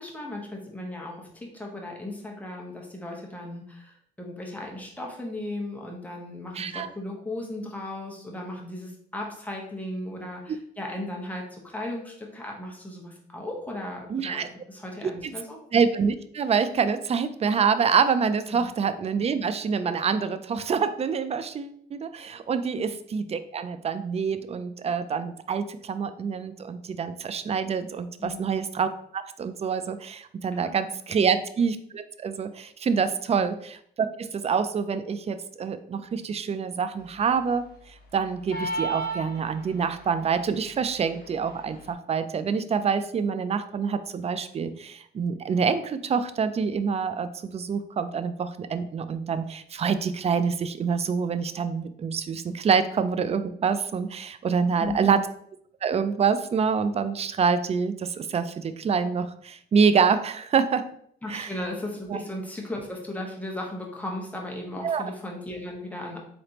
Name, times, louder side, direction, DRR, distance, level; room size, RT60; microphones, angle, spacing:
voice 1, 0.0-15.6 18.5-18.7 22.5-22.6 28.2-28.6 30.5-30.7 31.1-31.3 33.3-33.5 54.8-55.2 61.2-66.2, left 1 dB, 5° left, -1 dB, 1.1 m, -36 dB
voice 2, 6.6-6.9 14.1-14.5 15.7-37.7 38.1-55.2 55.8-60.8 61.3-61.5 62.1-62.2 64.8-65.0, right 6 dB, 30° right, 12 dB, 0.3 m, -26 dB
sound 1, 38.5-39.9, right 2 dB, 50° left, 1.1 m, -31 dB
3.7 x 3.4 x 2.9 m, 0.67 s
cardioid pair, 90°, 20 cm